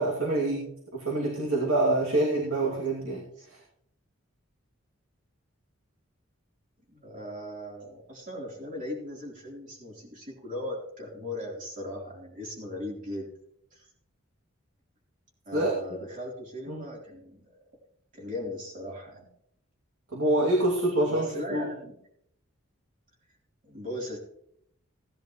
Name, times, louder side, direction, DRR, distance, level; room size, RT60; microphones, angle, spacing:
voice 1, 0.0-3.6 15.5-15.7 16.7-16.8 20.1-21.7, right 2 dB, 85° right, -3 dB, 2.6 m, -26 dB
voice 2, 6.9-13.3 13.7-13.9 15.5-17.6 18.1-19.3 21.1-21.9 23.6-24.2, left 1 dB, 40° right, -3 dB, 3.7 m, -38 dB
17.5 x 10.5 x 3.1 m, 0.73 s
head